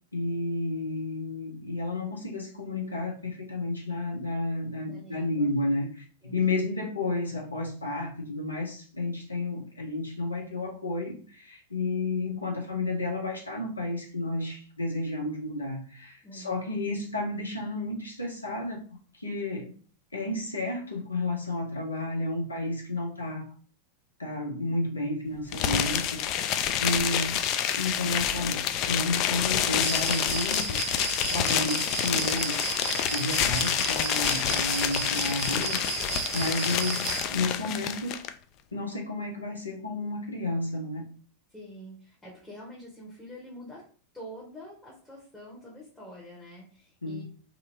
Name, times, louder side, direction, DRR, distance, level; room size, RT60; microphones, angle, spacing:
voice 1, 0.1-18.8 19.1-19.7 20.1-23.5 24.2-27.4 27.8-30.9 31.3-32.6 33.1-38.2 38.7-41.0 47.0-47.2, left 2 dB, 80° left, 0 dB, 0.9 m, -32 dB
voice 2, 4.8-5.5 6.2-6.9 16.2-16.7 41.5-43.9 44.1-47.2, equal, 10° left, -4 dB, 1.0 m, -46 dB
sound 1, 25.5-38.3, left 10 dB, 40° left, 0.3 m, -28 dB
Cricket, 29.8-37.3, right 7 dB, 55° right, 0.4 m, -34 dB
2.9 x 2.7 x 2.6 m, 0.40 s
figure-of-eight pair, 90°, 0 cm